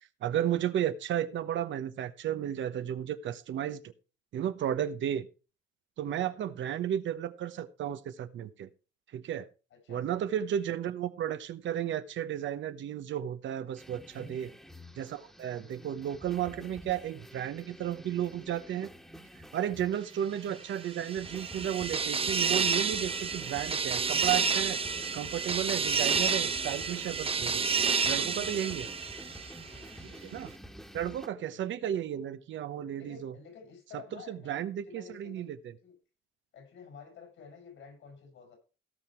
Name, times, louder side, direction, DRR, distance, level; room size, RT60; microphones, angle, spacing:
voice 1, 0.2-3.9 4.3-5.3 6.0-8.7 9.1-9.5 9.9-14.5 15.0-18.9 19.5-24.8 25.1-27.6 28.0-28.9 30.3-30.5 30.9-33.3 33.9-34.0 34.3-35.6, right 10 dB, 70° right, 11 dB, 1.0 m, -33 dB
voice 2, 6.2-6.5 9.7-10.4 14.1-14.6 15.6-16.0 16.6-16.8 28.6-29.2 29.7-30.1 31.5-31.6 33.0-35.6 35.8-36.0 36.5-38.6, left 6 dB, 80° left, 4 dB, 6.9 m, -52 dB
sound 1, 13.8-31.3, equal, ahead, 1.6 m, -49 dB
sound 2, 20.7-29.8, right 5 dB, 30° right, 0.8 m, -30 dB
17.0 x 6.0 x 4.5 m, 0.34 s
cardioid pair, 90°, 20 cm